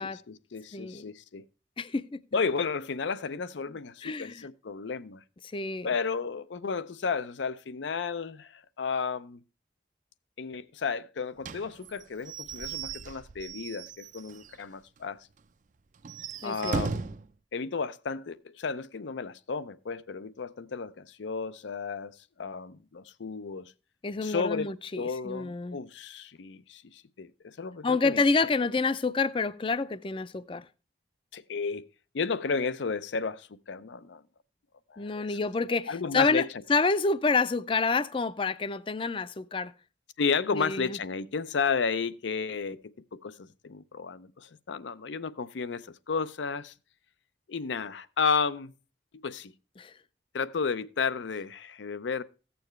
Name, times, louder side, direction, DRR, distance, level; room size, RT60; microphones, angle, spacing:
voice 1, 0.0-1.4 2.3-5.2 5.8-9.4 10.4-15.3 16.4-17.1 17.5-22.1 22.4-23.7 24.2-28.2 31.3-31.9 32.1-34.2 34.9-35.4 35.9-36.5 40.2-42.8 43.1-46.7 47.5-48.7 49.2-49.5 50.3-52.2, left 5 dB, 85° left, 0.5 m, -33 dB
voice 2, 0.7-1.0 1.8-2.2 4.0-4.5 5.5-5.9 16.4-16.8 24.0-25.8 27.8-30.6 35.0-36.4 36.7-39.7 40.5-41.0 49.8-49.9, left 4 dB, 30° left, 0.4 m, -28 dB
Slam / Squeak / Wood, 11.4-14.6 15.0-15.1 15.4-15.5 16.0-17.3, right 4 dB, 45° right, 0.4 m, -37 dB
15.5 x 6.9 x 3.1 m
head